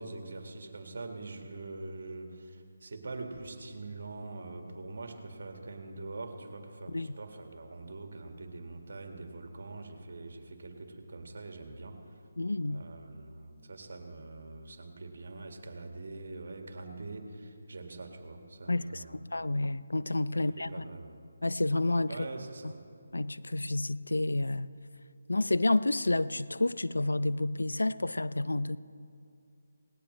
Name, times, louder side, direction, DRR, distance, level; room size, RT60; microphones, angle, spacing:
voice 1, 0.0-12.2 12.6-19.2 20.3-21.2 22.1-22.8, right 3 dB, 65° right, 4 dB, 1.9 m, -44 dB
voice 2, 12.4-12.8 18.7-19.0 19.3-20.8 21.4-22.2 23.1-24.7 25.3-28.8, left 2 dB, 85° left, 16 dB, 0.4 m, -29 dB
18.5 x 17.5 x 3.2 m, 2.4 s
figure-of-eight pair, 155°, 0 cm